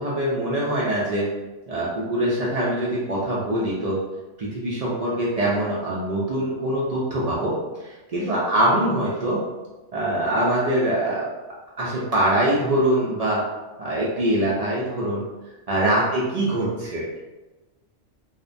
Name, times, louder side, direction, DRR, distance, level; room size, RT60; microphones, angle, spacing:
voice 1, 0.0-1.3 1.7-4.0 4.4-9.4 9.9-11.3 11.8-13.4 13.8-15.3 15.7-17.1, right 1 dB, 65° right, -6 dB, 0.3 m, -23 dB
2.7 x 2.1 x 2.5 m, 1.1 s
omnidirectional pair, 1.2 m